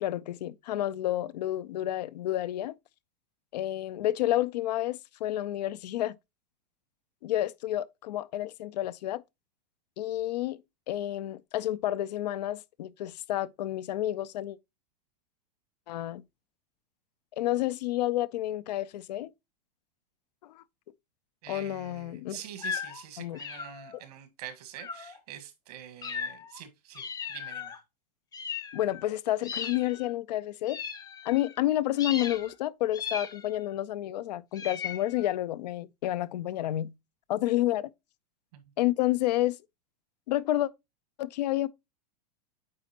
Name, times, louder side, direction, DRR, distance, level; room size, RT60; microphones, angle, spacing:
voice 1, 0.0-2.8 3.5-6.1 7.2-9.2 10.0-10.6 10.9-14.6 15.9-16.2 17.3-19.3 20.4-20.6 21.5-22.4 23.2-23.4 23.9-24.0 28.7-30.8 31.3-36.9 37.3-37.9 38.8-39.6 40.3-40.7 41.2-41.7, left 14 dB, 75° left, 0.5 m, -30 dB
voice 2, 21.4-27.0 27.3-27.8 38.5-38.6, right 10 dB, 70° right, 1.6 m, -45 dB
sound 1, 22.6-23.0 23.4-24.0 24.8-25.2 26.0-26.6 26.9-27.8 28.3-29.1 29.4-30.1 30.7-31.6 32.0-32.5 32.9-33.7 34.5-35.4, left 6 dB, 20° left, 0.7 m, -37 dB
8.7 x 4.0 x 2.9 m
hypercardioid pair, 115°, 21 cm